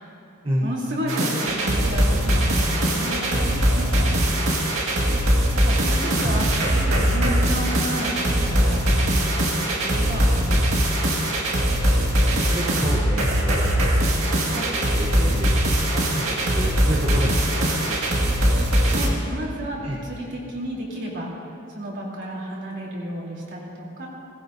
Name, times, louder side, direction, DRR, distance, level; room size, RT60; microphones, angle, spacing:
voice 1, 0.6-4.3 5.5-10.7 14.5-14.7 18.9-21.3 21.7-24.1, equal, 60° right, -4 dB, 3.3 m, -32 dB
sound 1, 1.1-19.1, equal, 90° right, 2.0 m, -21 dB
voice 2, 12.5-13.7 14.2-18.6 19.8-20.0, equal, 25° right, -4 dB, 1.0 m, -31 dB
19.0 x 16.5 x 2.7 m, 2.8 s
head